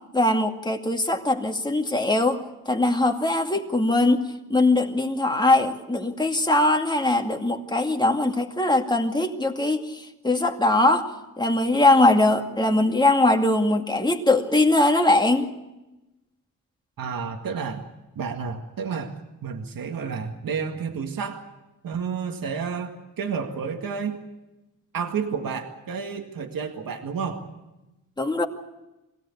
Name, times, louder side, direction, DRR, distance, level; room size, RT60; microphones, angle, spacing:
voice 1, 0.1-4.2 4.5-15.5 28.2-28.5, left 2 dB, 15° left, 3 dB, 2.3 m, -21 dB
voice 2, 17.0-17.8 18.2-19.1 19.4-21.4 21.8-24.2 24.9-27.4, right 6 dB, 85° right, 4 dB, 2.0 m, -30 dB
23.0 x 17.0 x 8.5 m, 1.0 s
cardioid pair, 75°, 33 cm